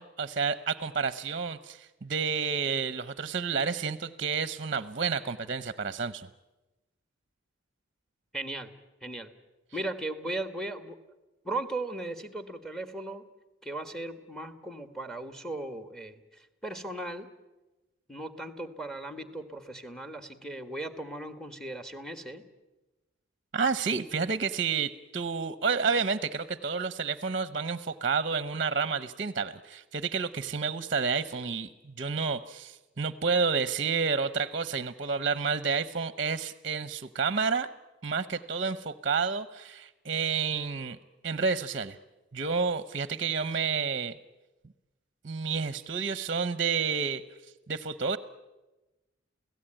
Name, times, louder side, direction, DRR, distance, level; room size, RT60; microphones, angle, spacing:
voice 1, 0.0-6.3 23.5-37.7 38.0-41.0 41.2-42.0 42.3-44.2 45.2-47.2 47.7-48.2, right 5 dB, 45° right, 14 dB, 0.7 m, -30 dB
voice 2, 8.3-8.7 9.0-9.3 9.7-11.0 11.4-13.2 13.6-17.3 18.1-22.4, right 2 dB, 5° left, 9 dB, 1.6 m, -37 dB
29.0 x 17.5 x 8.9 m, 1.1 s
head